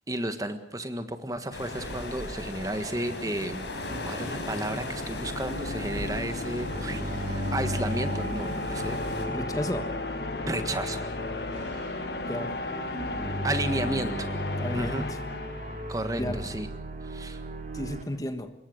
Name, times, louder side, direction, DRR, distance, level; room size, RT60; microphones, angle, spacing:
voice 1, 0.1-3.7 4.1-9.0 10.4-11.2 13.4-14.3 14.7-15.0 15.9-16.7 17.0-17.4, right 1 dB, 20° right, 9 dB, 1.5 m, -33 dB
sound 1, 1.5-9.3, left 1 dB, 80° left, 5.4 m, -37 dB
sound 2, 3.2-16.3, left 2 dB, 65° left, 1.2 m, -35 dB
sound 3, 6.6-18.0, equal, 40° right, 3.7 m, -36 dB
voice 2, 9.2-9.9 12.2-12.6 14.6-15.2 16.2-16.4 17.7-18.5, left 1 dB, 20° left, 9 dB, 1.4 m, -33 dB
25.0 x 21.5 x 6.5 m, 0.74 s
head